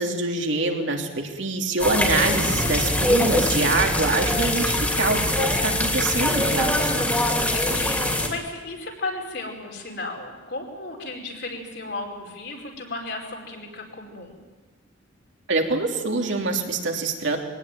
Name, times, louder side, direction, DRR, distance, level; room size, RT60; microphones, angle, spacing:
voice 1, 0.0-6.9 15.5-17.4, right 3 dB, 75° right, 2 dB, 3.0 m, -25 dB
sound 1, 1.8-8.3, left 1 dB, 10° left, 2.8 m, -23 dB
voice 2, 7.0-14.4, left 2 dB, 60° left, 1 dB, 4.8 m, -35 dB
23.0 x 18.0 x 9.3 m, 1.3 s
head